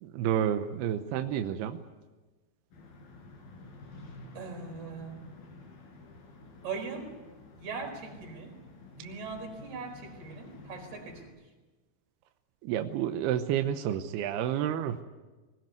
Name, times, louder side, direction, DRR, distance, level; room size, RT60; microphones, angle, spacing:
voice 1, 0.0-1.8 12.6-15.0, right 10 dB, 75° right, 7 dB, 2.5 m, -30 dB
sound 1, 2.7-11.3, left 3 dB, 50° left, 6.3 m, -50 dB
voice 2, 4.3-5.3 6.6-7.2 7.6-8.6 8.9-11.3, right 4 dB, 55° right, 2 dB, 6.3 m, -40 dB
20.5 x 19.0 x 9.5 m, 1.2 s
omnidirectional pair, 5.4 m